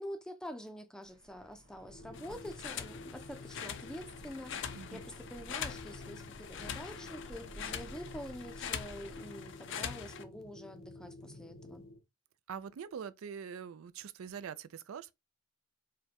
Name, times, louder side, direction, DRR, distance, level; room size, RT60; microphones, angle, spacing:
voice 1, 0.0-11.8, equal, 5° left, 0.4 m, -46 dB
sound 1, 1.0-9.2, right 1 dB, 65° right, 1.4 m, -56 dB
sound 2, 1.8-12.0, left 1 dB, 75° left, 0.9 m, -51 dB
sound 3, 2.1-10.2, left 8 dB, 60° left, 0.4 m, -43 dB
voice 2, 12.5-15.1, right 7 dB, 85° right, 0.4 m, -44 dB
5.0 x 2.2 x 2.8 m
head